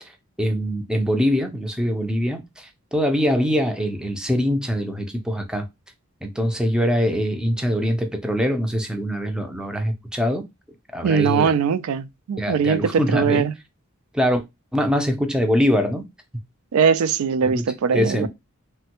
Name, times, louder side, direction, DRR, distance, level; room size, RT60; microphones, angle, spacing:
voice 1, 0.4-5.7 6.2-10.5 10.9-11.5 12.4-13.5 14.1-14.4 14.7-16.0 17.5-17.6 17.9-18.3, equal, 5° right, 0.4 m, -23 dB
voice 2, 11.0-13.5 16.7-18.3, right 6 dB, 80° right, 0.3 m, -21 dB
3.2 x 2.2 x 2.8 m
head